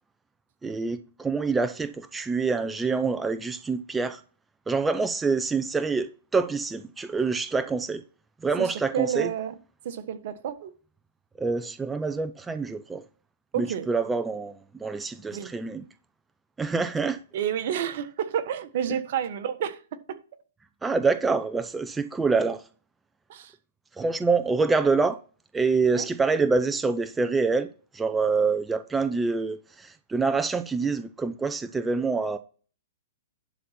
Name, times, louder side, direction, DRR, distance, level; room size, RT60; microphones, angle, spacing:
voice 1, 0.6-4.2 4.7-8.0 8.4-9.3 11.4-13.0 13.6-14.5 14.8-15.8 16.6-17.2 20.8-22.6 24.0-25.2 25.5-27.7 27.9-32.4, right 4 dB, 10° right, 0.6 m, -26 dB
voice 2, 8.6-9.5 9.8-10.7 13.5-13.9 15.3-15.5 17.3-20.2 23.3-23.5 25.9-26.1, right 9 dB, 55° right, 1.3 m, -30 dB
11.0 x 4.2 x 5.8 m
hypercardioid pair, 130°, 0 cm